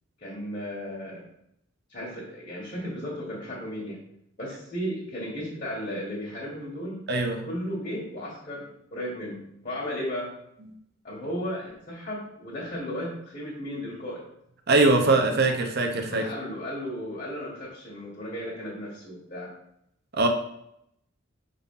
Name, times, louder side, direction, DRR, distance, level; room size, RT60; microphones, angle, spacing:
voice 1, 0.2-1.2 1.9-4.0 4.4-7.1 7.5-10.3 11.0-14.2 16.1-19.5, equal, 45° left, -7 dB, 1.7 m, -35 dB
voice 2, 7.1-7.4 14.7-16.2 20.1-20.3, right 3 dB, 55° right, 4 dB, 1.0 m, -22 dB
5.1 x 4.1 x 5.6 m, 0.76 s
head